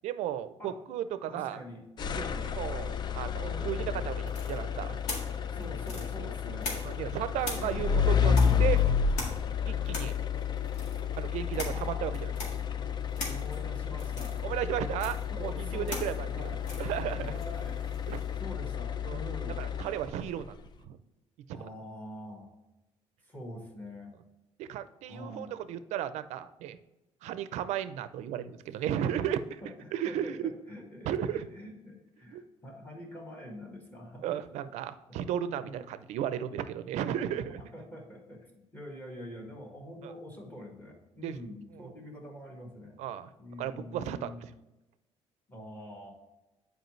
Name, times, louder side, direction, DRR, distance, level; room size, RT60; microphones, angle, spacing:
voice 1, 0.0-1.6 2.1-2.2 2.6-4.2 4.5-5.0 6.8-8.3 8.6-8.8 9.7-10.1 11.2-12.3 14.4-16.5 16.8-17.3 18.1-18.2 19.0-19.2 19.6-20.5 20.8-21.0 21.5-21.6 24.6-26.8 27.2-29.6 29.9-30.6 31.1-31.5 32.3-32.4 34.2-37.6 40.0-40.1 41.2-41.4 41.7-41.9 43.0-43.3 43.6-44.5, right 10 dB, 85° right, 13 dB, 0.5 m, -34 dB
voice 2, 1.2-1.8 2.1-2.5 3.4-4.0 5.5-6.8 7.6-8.1 8.4-8.8 11.5-12.2 13.2-14.4 15.3-16.6 17.2-17.9 18.4-19.6 21.5-22.5 23.2-24.1 25.1-25.6 29.6-34.3 35.1-35.3 35.6-35.9 37.4-37.5 37.7-43.0 43.4-44.5 45.5-46.1, left 1 dB, 15° left, 1 dB, 1.6 m, -45 dB
sound 1, 2.0-20.3, left 7 dB, 40° left, 0.4 m, -31 dB
sound 2, 4.3-7.1 7.4-18.4, left 2 dB, 90° left, 1.8 m, -42 dB
7.9 x 4.8 x 3.1 m, 1.0 s
cardioid pair, 130°, 12 cm